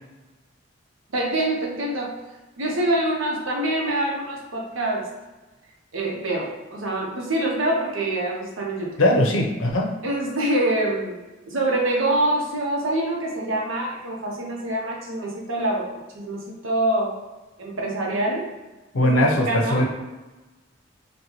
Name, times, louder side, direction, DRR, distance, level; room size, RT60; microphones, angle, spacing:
voice 1, 1.1-2.1 2.6-5.1 5.9-9.0 10.0-17.1 17.6-18.5 19.0-19.8, right 1 dB, 90° right, -1 dB, 0.8 m, -25 dB
voice 2, 9.0-9.9 18.9-19.9, left 1 dB, 85° left, 1 dB, 0.7 m, -20 dB
4.0 x 2.2 x 3.0 m, 1.2 s
head